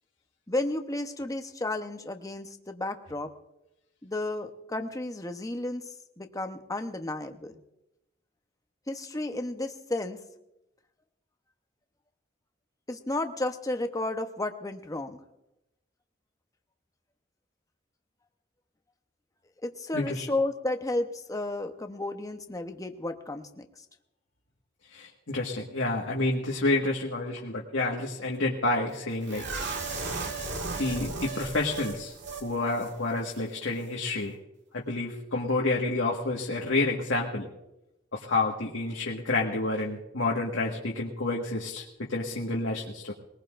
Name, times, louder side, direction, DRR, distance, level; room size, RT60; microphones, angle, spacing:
voice 1, 0.5-3.3 4.0-5.9 6.2-7.6 8.9-10.2 12.9-15.2 19.6-23.7, left 2 dB, 20° left, 6 dB, 0.9 m, -32 dB
voice 2, 19.9-20.3 24.9-29.6 30.8-32.1 32.4-34.4 34.7-37.5 38.1-43.1, left 2 dB, 75° left, -2 dB, 1.7 m, -29 dB
sound 1, 29.3-32.5 32.7-32.9 33.3-33.4, right 3 dB, 65° right, 2.0 m, -35 dB
21.5 x 19.5 x 2.6 m, 0.91 s
head